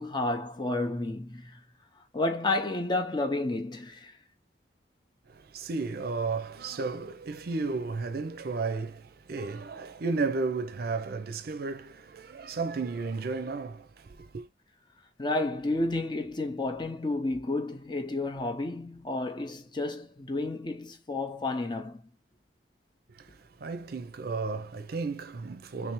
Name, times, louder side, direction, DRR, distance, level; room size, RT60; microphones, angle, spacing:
voice 1, 0.0-1.6 2.1-4.2 15.2-22.0, left 2 dB, 25° left, 0.6 m, -31 dB
voice 2, 5.3-14.5 23.1-25.9, right 4 dB, 60° right, 0.5 m, -33 dB
3.4 x 3.1 x 3.0 m
head